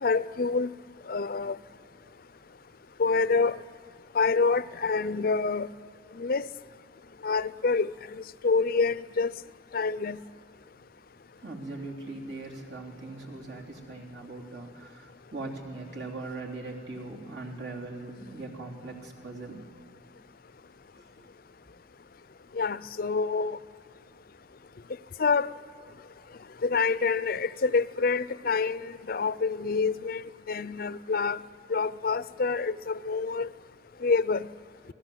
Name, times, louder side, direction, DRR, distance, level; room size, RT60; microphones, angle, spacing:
voice 1, 0.0-0.7 1.1-1.6 3.0-3.6 4.1-5.7 6.2-6.5 7.2-7.9 8.4-9.3 9.7-10.2 22.5-23.6 25.2-25.5 26.6-30.2 30.5-31.4 31.7-33.5 34.0-34.5, left 4 dB, 50° left, 0.5 m, -27 dB
voice 2, 11.4-19.6 21.0-21.3, right 2 dB, 70° right, 3.5 m, -40 dB
28.0 x 18.5 x 7.9 m
head